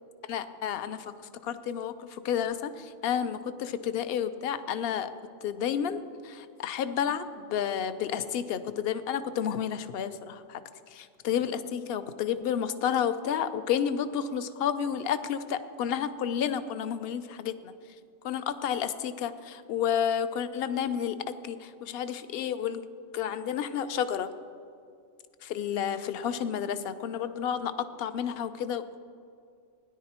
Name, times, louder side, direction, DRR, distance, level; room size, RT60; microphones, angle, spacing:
voice 1, 0.3-5.1 5.4-10.6 10.9-17.7 18.2-24.3 25.4-29.0, left 8 dB, 60° left, 12 dB, 0.8 m, -31 dB
17.0 x 10.5 x 4.3 m, 2.4 s
omnidirectional pair, 1.3 m